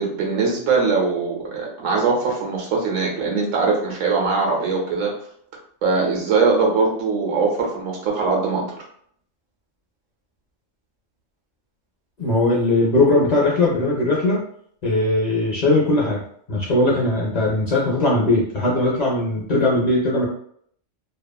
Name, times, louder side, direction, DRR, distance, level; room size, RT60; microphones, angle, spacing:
voice 1, 0.0-5.1 5.8-8.7, right 4 dB, 85° right, 0 dB, 1.1 m, -21 dB
voice 2, 12.2-14.4 14.8-16.2 16.5-20.2, left 2 dB, 45° left, -3 dB, 0.6 m, -19 dB
2.8 x 2.4 x 2.2 m, 0.64 s
omnidirectional pair, 1.3 m